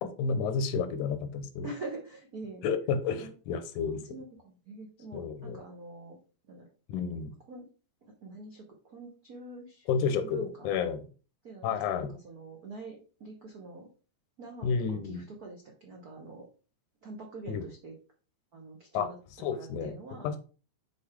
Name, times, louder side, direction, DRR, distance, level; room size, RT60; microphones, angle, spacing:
voice 1, 0.0-1.7 2.6-4.0 5.1-5.6 6.9-7.3 9.9-11.0 11.6-12.2 14.6-15.2 17.5-17.6 18.9-19.1 19.4-20.0 20.2-20.4, left 6 dB, 90° left, 10 dB, 2.3 m, -31 dB
voice 2, 1.6-2.7 3.2-3.3 4.1-6.2 6.5-6.6 7.1-7.2 7.5-7.7 8.2-10.7 11.4-13.9 14.4-16.5 17.0-17.9 18.5-19.2 19.5-20.4, right 3 dB, 85° right, 0 dB, 0.8 m, -45 dB
6.8 x 4.3 x 3.6 m, 0.36 s
omnidirectional pair, 3.4 m